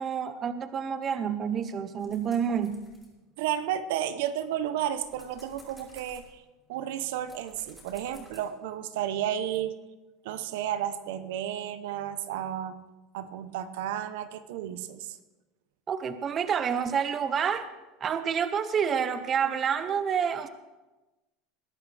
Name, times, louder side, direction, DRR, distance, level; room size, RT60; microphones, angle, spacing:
voice 1, 0.0-2.9 15.9-17.7 18.0-20.5, right 7 dB, 30° right, 11 dB, 0.7 m, -28 dB
sound 1, 2.0-3.8 4.3-8.4, left 1 dB, ahead, 5.3 m, -55 dB
voice 2, 3.4-6.4 6.7-9.8 10.2-12.7 13.1-15.2, right 10 dB, 80° right, 12 dB, 0.8 m, -32 dB
20.5 x 11.5 x 3.4 m, 1.1 s
supercardioid pair, 135°, 0 cm